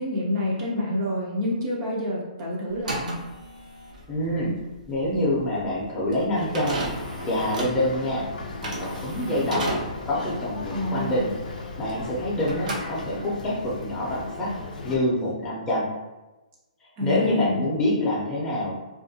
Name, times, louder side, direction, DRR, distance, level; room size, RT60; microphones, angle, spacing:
voice 1, 0.0-3.1 10.7-11.2 17.0-17.7, left 1 dB, 30° right, -4 dB, 0.5 m, -27 dB
sound 1, 2.7-12.2 12.4-13.5, right 2 dB, 70° right, 0.6 m, -34 dB
voice 2, 4.1-4.5 4.9-6.8 7.2-8.3 8.6-9.7 10.1-11.3 11.8-14.5 14.8-15.9 17.0-18.7, left 1 dB, 15° left, -6 dB, 0.6 m, -26 dB
Boat Water vehicle, 6.3-15.0, left 3 dB, 70° left, 0.4 m, -37 dB
2.4 x 2.2 x 2.6 m, 1.1 s
hypercardioid pair, 155°, 4 cm